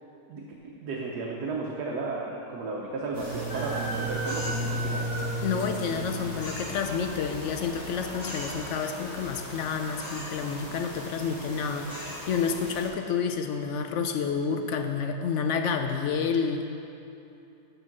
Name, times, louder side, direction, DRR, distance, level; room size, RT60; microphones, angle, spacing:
voice 1, 0.3-5.2, right 3 dB, 80° right, -3 dB, 1.4 m, -34 dB
sound 1, 3.1-12.9, right 1 dB, 10° left, 2.0 m, -35 dB
voice 2, 5.4-16.7, left 6 dB, 65° left, 5 dB, 0.7 m, -29 dB
6.7 x 6.5 x 5.9 m, 2.8 s
omnidirectional pair, 1.6 m